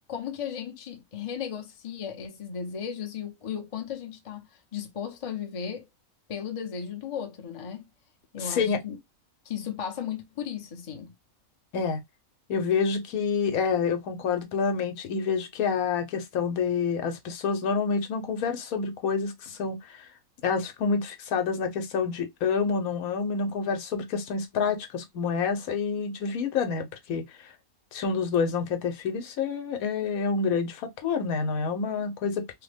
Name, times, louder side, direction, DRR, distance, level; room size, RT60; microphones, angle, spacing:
voice 1, 0.1-5.9 6.3-7.8 8.3-9.0 9.4-11.1, left 8 dB, 40° left, 0.4 m, -35 dB
voice 2, 8.4-8.8 11.7-12.0 12.5-20.1 20.4-27.5 27.9-32.4, left 5 dB, 75° left, 1.1 m, -28 dB
3.2 x 2.1 x 3.3 m
omnidirectional pair, 1.5 m